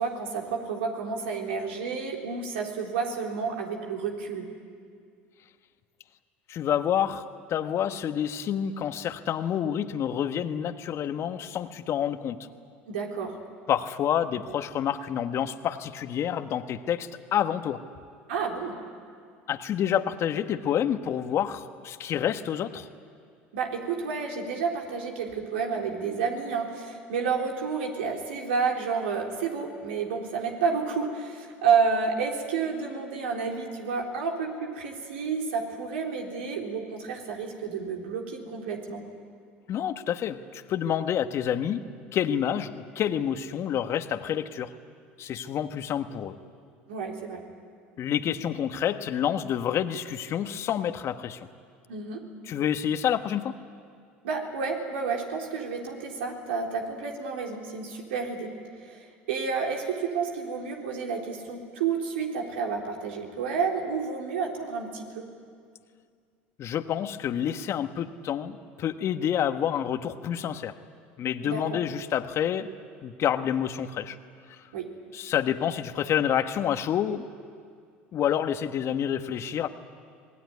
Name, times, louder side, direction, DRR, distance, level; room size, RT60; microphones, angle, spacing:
voice 1, 0.0-4.5 12.9-13.4 18.3-18.7 23.5-39.0 46.9-47.4 51.9-52.2 54.2-58.5 58.8-65.2 71.4-71.8 74.7-74.9, right 5 dB, 80° right, 1 dB, 3.9 m, -30 dB
voice 2, 6.5-7.2 7.5-12.4 13.7-17.8 19.5-22.9 39.7-41.8 42.1-44.7 45.2-46.3 48.0-51.4 52.5-53.5 66.6-70.7 71.2-72.7 73.0-74.2 74.5-74.7 75.1-77.3 78.1-79.7, left 9 dB, 50° left, 9 dB, 1.5 m, -28 dB
25.5 x 19.5 x 9.7 m, 2.2 s
hypercardioid pair, 75°, 6 cm